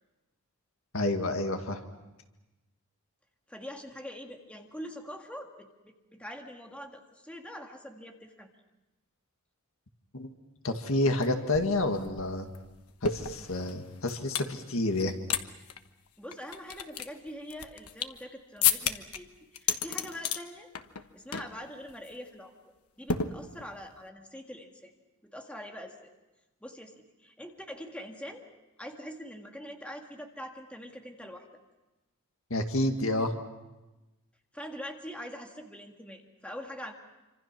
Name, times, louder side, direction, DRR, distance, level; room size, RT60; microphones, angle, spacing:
voice 1, 0.9-1.8 10.1-10.3 10.6-12.5 13.0-15.1 32.5-33.3, left 2 dB, 70° left, 5 dB, 2.0 m, -29 dB
voice 2, 3.5-8.5 16.2-20.7 21.1-22.5 23.0-24.9 25.2-26.0 26.6-28.4 28.8-31.5 34.5-36.9, equal, 5° left, 2 dB, 1.9 m, -44 dB
sound 1, 11.2-11.3 11.5-14.5 14.9-15.4 15.7-15.8 16.3-18.2 18.6-19.2 19.5-20.4 20.7-21.0 21.3-21.6 21.9-22.1 23.1-23.8, left 7 dB, 85° left, 1.2 m, -31 dB
27.0 x 26.0 x 6.1 m, 1.1 s
head